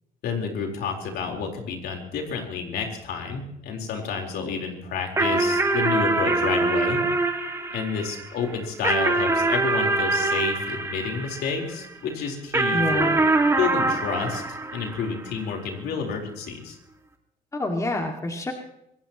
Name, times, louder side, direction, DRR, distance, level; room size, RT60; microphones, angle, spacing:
voice 1, 0.2-7.0 7.7-13.1 13.6-16.8, left 5 dB, 70° left, 2 dB, 4.2 m, -30 dB
sound 1, 5.2-11.9 12.5-15.3, right 2 dB, 15° right, 2.1 m, -24 dB
voice 2, 12.7-13.2 17.5-18.5, left 2 dB, 20° left, 3 dB, 2.2 m, -27 dB
25.5 x 17.5 x 3.1 m, 0.81 s
cardioid pair, 110°, 17 cm